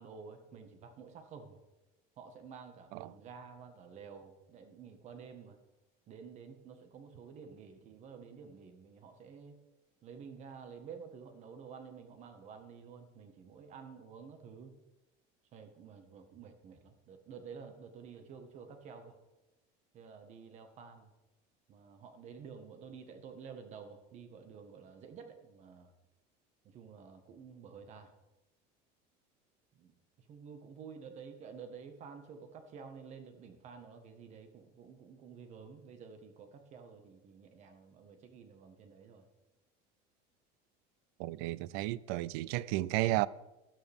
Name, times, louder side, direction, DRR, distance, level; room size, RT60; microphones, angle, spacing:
voice 1, 0.0-1.6 2.2-5.6 6.1-9.6 10.0-14.8 15.5-19.2 19.9-21.1 21.7-25.9 26.6-28.1 29.7-29.9 30.3-39.2, right 6 dB, 35° right, 1.5 m, -51 dB
voice 2, 41.2-43.3, right 17 dB, 85° right, 0.5 m, -33 dB
13.0 x 12.5 x 3.6 m
cardioid pair, 170°, 19 cm